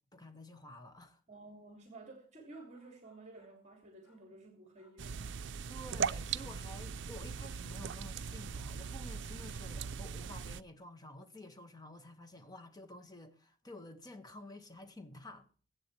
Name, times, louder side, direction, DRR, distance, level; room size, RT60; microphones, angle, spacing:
voice 1, 0.1-1.2 5.7-15.5, left 1 dB, 20° left, 1.7 m, -51 dB
voice 2, 1.3-5.4, right 2 dB, 40° right, 2.6 m, -53 dB
sound 1, 2.5-3.7 4.0-4.4 4.7-5.5 8.3-9.3, left 3 dB, 85° left, 5.7 m, -69 dB
sound 2, 5.0-10.6, right 6 dB, 70° right, 0.5 m, -39 dB
23.0 x 8.5 x 3.3 m
head